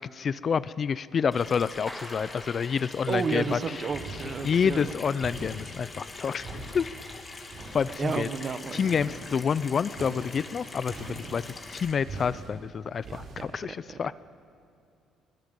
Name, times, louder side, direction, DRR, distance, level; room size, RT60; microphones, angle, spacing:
voice 1, 0.1-3.6 4.4-6.9 7.7-8.3 8.7-11.4 11.7-14.1, left 6 dB, 45° left, 18 dB, 0.4 m, -28 dB
Water tap faucet / Sink (filling or washing), 1.3-11.9, left 3 dB, 30° left, 2.6 m, -43 dB
Clapping, 1.9-3.6, equal, ahead, 2.1 m, -45 dB
voice 2, 3.1-4.9 8.0-8.9 13.1-13.6, right 5 dB, 40° right, 11 dB, 1.2 m, -31 dB
sound 1, 3.9-4.8 5.2-5.8 6.3-7.0 7.4-8.3 8.6-9.3 9.9-10.4 10.8-11.5 12.0-12.5 13.0-13.4, right 2 dB, 70° right, 5.8 m, -42 dB
23.0 x 18.5 x 7.6 m, 2.5 s
cardioid pair, 105°, 0 cm